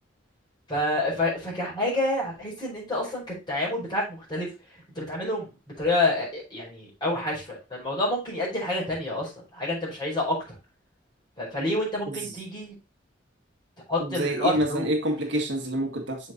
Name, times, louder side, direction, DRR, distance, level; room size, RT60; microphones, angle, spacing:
voice 1, 0.7-4.5 4.9-5.5 5.8-10.4 11.4-12.7 13.9-14.9, left 1 dB, 25° left, -5 dB, 4.9 m, -28 dB
voice 2, 14.0-16.2, right 1 dB, 65° right, 2 dB, 1.7 m, -27 dB
7.2 x 5.1 x 3.8 m, 0.28 s
head